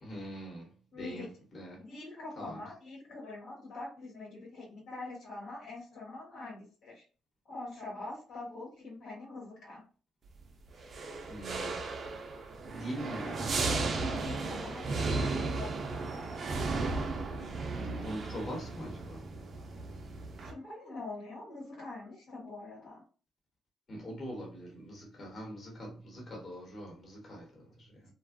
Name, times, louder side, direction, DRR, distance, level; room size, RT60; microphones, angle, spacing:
voice 1, 0.0-0.7 1.0-1.8 2.4-2.6 11.3-11.9 12.7-13.7 17.3-17.7 18.0-19.2 23.9-27.9, equal, 40° left, 1.0 m, -43 dB
voice 2, 0.9-1.3 1.7-7.0 7.4-9.8 13.9-16.2 20.4-23.0 28.0-28.1, left 2 dB, 80° left, 1.1 m, -44 dB
sound 1, 10.8-20.5, right 3 dB, 50° right, 0.5 m, -35 dB
2.4 x 2.2 x 2.5 m
cardioid pair, 90°, 0 cm